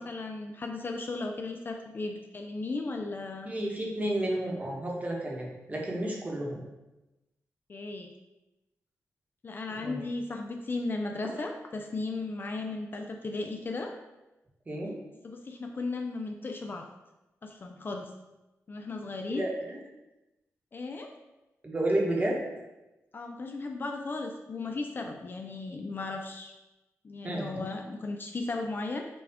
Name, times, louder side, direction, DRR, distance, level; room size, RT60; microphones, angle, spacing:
voice 1, 0.0-3.5 7.7-8.1 9.4-13.9 15.2-16.9 17.4-18.1 18.7-19.4 20.7-21.1 23.1-26.5 27.0-29.1, left 3 dB, 40° left, 3 dB, 0.4 m, -36 dB
voice 2, 3.4-6.6 9.8-10.0 11.3-11.4 14.7-14.9 19.3-19.8 21.6-22.4 27.2-27.5, right 1 dB, 30° right, -2 dB, 1.1 m, -31 dB
5.9 x 2.4 x 3.5 m, 1.0 s
wide cardioid pair, 100°, 6 cm